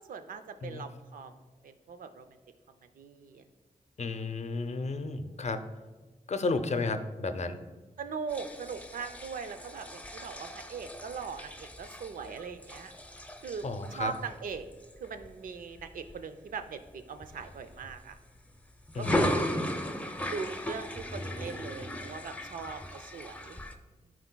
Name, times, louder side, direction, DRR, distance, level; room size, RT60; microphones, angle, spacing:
voice 1, 0.0-1.4 1.6-2.3 3.0-3.4 5.2-5.4 8.0-12.9 13.4-14.7 15.0-18.2 19.0-19.6 20.3-23.6, right 5 dB, 85° right, 9 dB, 0.5 m, -40 dB
voice 2, 4.0-5.6 6.3-7.6 13.6-14.1 18.9-19.3, left 3 dB, 55° left, 9 dB, 0.6 m, -32 dB
sound 1, 8.3-16.1 16.6-16.9 17.2-18.4 18.9-23.7, left 1 dB, 10° left, 0.7 m, -37 dB
11.0 x 4.5 x 2.2 m, 1.3 s
cardioid pair, 55°, 14 cm